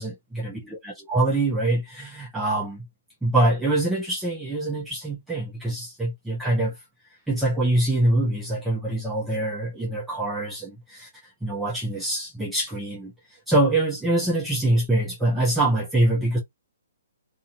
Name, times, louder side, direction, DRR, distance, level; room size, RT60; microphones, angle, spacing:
voice 1, 0.0-2.8 3.2-6.8 7.3-11.1 11.4-13.1 13.5-16.4, right 2 dB, 5° right, 0.9 m, -24 dB
2.7 x 2.7 x 2.5 m
hypercardioid pair, 140°, 0 cm